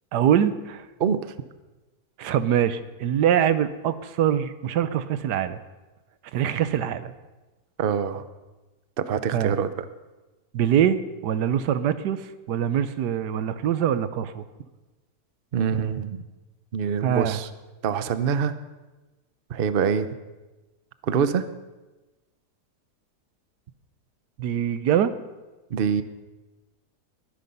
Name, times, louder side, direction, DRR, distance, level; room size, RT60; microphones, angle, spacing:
voice 1, 0.1-0.8 2.2-5.6 6.3-7.1 9.3-9.5 10.5-14.4 17.0-17.4 24.4-25.1, right 9 dB, 85° right, 13 dB, 1.4 m, -23 dB
voice 2, 7.8-8.2 9.0-9.9 15.5-16.2 16.7-17.5 17.8-18.6 19.5-20.1 21.0-21.5 25.7-26.0, right 7 dB, 50° right, 12 dB, 0.7 m, -25 dB
21.5 x 10.0 x 5.4 m, 1.2 s
omnidirectional pair, 1.7 m